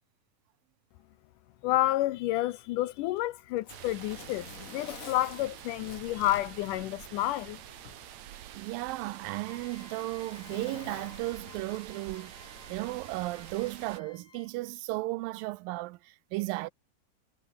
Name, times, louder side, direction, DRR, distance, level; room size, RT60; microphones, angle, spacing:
voice 1, 1.6-4.5 4.7-7.6, left 15 dB, 80° left, 2.0 m, -30 dB
Zipper (clothing), 3.0-7.4 7.8-7.9 8.7-12.2 13.3-13.5, left 5 dB, 35° left, 1.6 m, -49 dB
sound 1, 3.7-14.0, right 11 dB, 60° right, 2.4 m, -47 dB
voice 2, 8.6-12.4 12.7-16.7, right 20 dB, 80° right, 2.3 m, -35 dB
sound 2, 9.5-14.7, left 5 dB, 60° left, 5.6 m, -57 dB
omnidirectional pair, 4.1 m